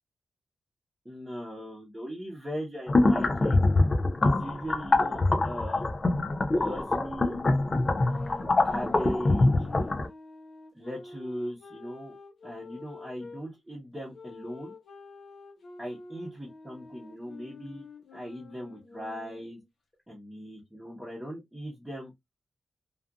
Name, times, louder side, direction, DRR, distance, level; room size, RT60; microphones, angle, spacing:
voice 1, 1.0-3.6 4.2-6.0 6.6-7.7 8.6-9.5 10.7-12.1 12.4-14.7 15.8-17.8 18.1-19.6 20.1-22.1, equal, 10° right, 0.9 m, -39 dB
sound 1, 2.9-10.1, left 2 dB, 30° left, 0.3 m, -24 dB
sound 2, 7.8-13.4 14.1-19.6, left 3 dB, 70° left, 0.8 m, -48 dB
2.5 x 2.4 x 2.3 m
wide cardioid pair, 155°, 0 cm